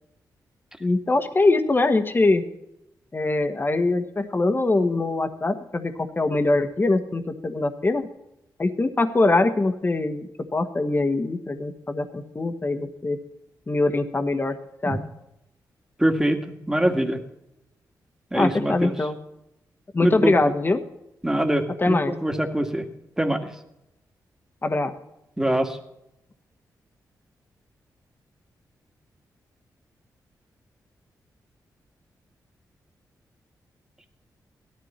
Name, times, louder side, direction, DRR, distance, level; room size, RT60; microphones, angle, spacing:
voice 1, 0.8-2.4 3.1-8.1 8.6-13.2 13.7-14.5 14.8-15.0 18.3-19.2 19.9-20.8 21.8-22.1 24.6-24.9, left 2 dB, 30° left, 8 dB, 1.4 m, -23 dB
voice 2, 16.0-16.4 16.7-17.2 18.3-18.9 20.0-20.5 21.2-22.9 23.2-23.5 25.4-25.8, right 1 dB, 10° right, 5 dB, 1.9 m, -23 dB
17.0 x 13.0 x 4.4 m, 0.84 s
cardioid pair, 75°, 7 cm